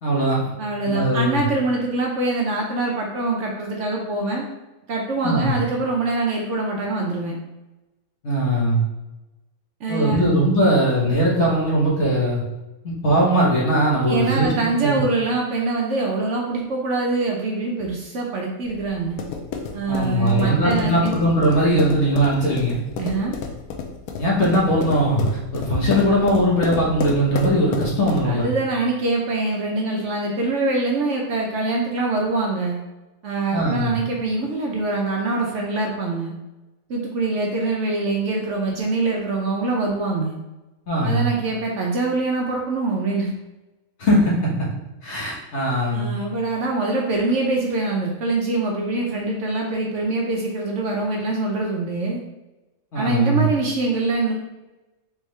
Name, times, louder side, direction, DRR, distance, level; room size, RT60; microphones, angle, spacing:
voice 1, 0.0-0.5 0.8-1.4 5.2-5.5 8.2-8.8 9.9-12.4 12.8-14.5 14.8-15.0 19.9-22.8 24.2-28.5 33.5-33.9 40.9-41.3 44.0-44.7 45.0-46.1 52.9-53.5, equal, 50° left, -5 dB, 1.3 m, -20 dB
voice 2, 0.6-4.5 4.9-7.4 9.8-10.2 14.1-19.2 19.7-21.1 23.0-23.3 28.2-32.8 33.2-36.3 36.9-40.4 41.0-43.3 45.9-52.2 52.9-54.3, right 3 dB, 65° right, -1 dB, 0.8 m, -24 dB
sound 1, 18.6-28.4, left 5 dB, 90° left, 1.1 m, -31 dB
3.5 x 3.5 x 3.1 m, 1.0 s
omnidirectional pair, 1.5 m